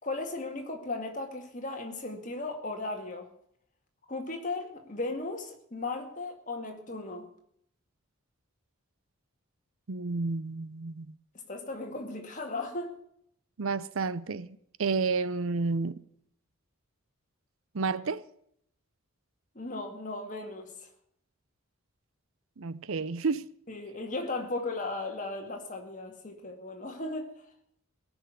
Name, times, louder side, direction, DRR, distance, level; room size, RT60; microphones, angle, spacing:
voice 1, 0.0-3.3 4.1-7.3 11.5-13.0 19.6-20.7 23.7-27.4, left 2 dB, 35° left, 2.2 m, -36 dB
voice 2, 9.9-11.2 13.6-15.9 17.7-18.2 22.6-23.5, right 4 dB, 70° right, 0.6 m, -31 dB
18.5 x 6.3 x 9.2 m
head